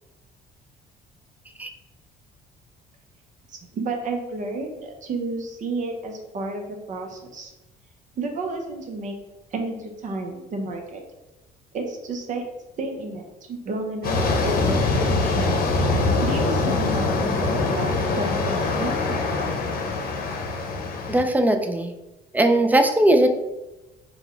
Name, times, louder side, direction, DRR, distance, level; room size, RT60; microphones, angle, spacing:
voice 1, 3.5-7.5 8.2-9.2 9.5-11.0 11.7-12.4 12.8-15.5 16.2-19.5, right 3 dB, 50° right, 3 dB, 0.8 m, -31 dB
sound 1, 14.0-21.2, left 3 dB, 60° left, 0.8 m, -23 dB
voice 2, 21.1-21.9 22.3-23.3, right 1 dB, 10° right, 5 dB, 0.4 m, -19 dB
4.0 x 2.3 x 4.3 m, 1.0 s
cardioid pair, 110°, 17 cm